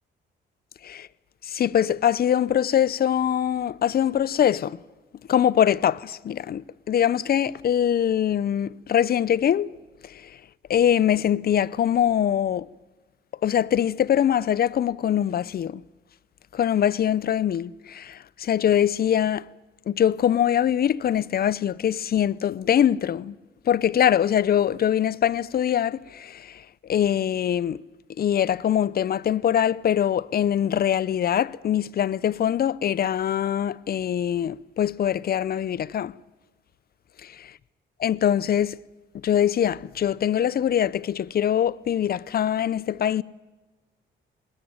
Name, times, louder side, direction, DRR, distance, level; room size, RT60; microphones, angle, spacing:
voice 1, 1.4-4.8 5.3-9.8 10.0-10.4 10.7-12.7 13.4-15.8 16.5-19.5 19.9-23.4 23.7-27.8 28.2-36.1 38.0-38.8 39.1-43.2, left 10 dB, 50° left, 0.7 m, -23 dB
20.5 x 19.0 x 9.5 m
cardioid pair, 90°, 20 cm